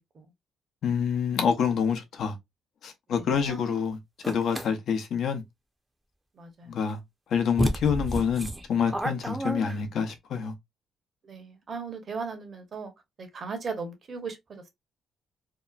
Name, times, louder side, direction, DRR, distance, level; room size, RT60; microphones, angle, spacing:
voice 1, 0.8-2.4 2.8-4.0 4.3-5.4 6.7-7.0 7.3-10.5, left 7 dB, 70° left, 0.7 m, -27 dB
voice 2, 3.1-3.7 6.4-6.7 11.2-12.9 13.2-14.7, right 4 dB, 45° right, 0.8 m, -37 dB
sound 1, 4.2-4.7 6.9-7.0 7.6-10.1, right 1 dB, 10° right, 0.6 m, -30 dB
2.8 x 2.1 x 2.3 m
cardioid pair, 90°, 0 cm